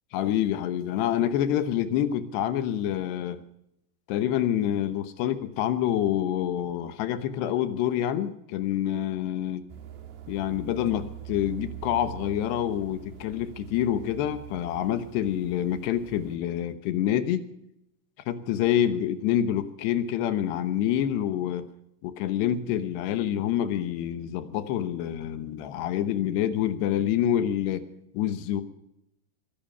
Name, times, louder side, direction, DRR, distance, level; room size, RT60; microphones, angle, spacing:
voice 1, 0.1-3.4 4.1-9.6 10.3-17.5 18.3-21.7 22.0-27.8 28.1-28.6, left 11 dB, 80° left, 11 dB, 3.1 m, -27 dB
sound 1, 9.7-16.4, right 12 dB, 75° right, 3.6 m, -43 dB
22.5 x 10.5 x 5.5 m, 0.81 s
omnidirectional pair, 5.0 m